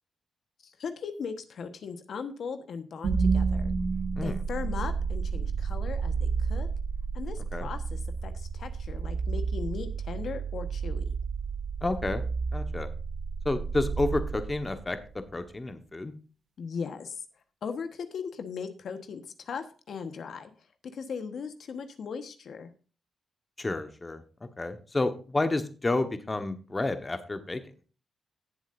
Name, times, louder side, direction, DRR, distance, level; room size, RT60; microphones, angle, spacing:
voice 1, 0.6-3.7 4.2-6.7 7.1-11.1 16.6-17.2 17.6-20.5 20.9-22.7, left 6 dB, 65° left, 9 dB, 1.2 m, -38 dB
sound 1, 3.0-15.1, right 5 dB, 75° right, 2.0 m, -31 dB
voice 2, 11.8-12.2 12.5-12.9 13.4-15.0 15.3-16.1 23.6-24.2 24.6-27.6, left 2 dB, 25° left, 8 dB, 1.2 m, -30 dB
17.5 x 7.6 x 2.6 m, 0.36 s
cardioid pair, 100°, 0 cm